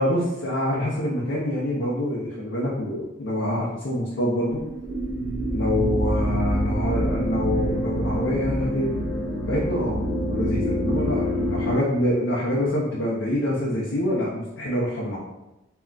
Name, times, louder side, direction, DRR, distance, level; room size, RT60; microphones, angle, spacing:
voice 1, 0.0-4.6 5.5-9.0 9.5-15.2, left 1 dB, 75° left, -5 dB, 0.5 m, -26 dB
sound 1, 4.5-11.8, equal, 75° right, 0.5 m, -26 dB
2.2 x 2.2 x 3.7 m, 0.96 s
head